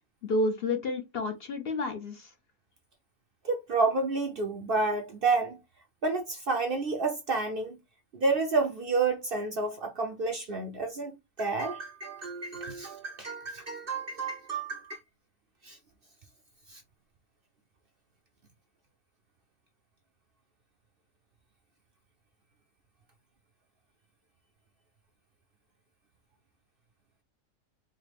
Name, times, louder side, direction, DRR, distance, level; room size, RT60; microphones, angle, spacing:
voice 1, 0.2-2.3, left 2 dB, 55° left, 0.7 m, -30 dB
voice 2, 3.4-5.6 6.0-7.8 8.1-11.1 11.4-15.0 15.6-15.8 16.7-16.8, right 3 dB, 55° right, 0.7 m, -30 dB
4.8 x 2.2 x 3.3 m
omnidirectional pair, 1.4 m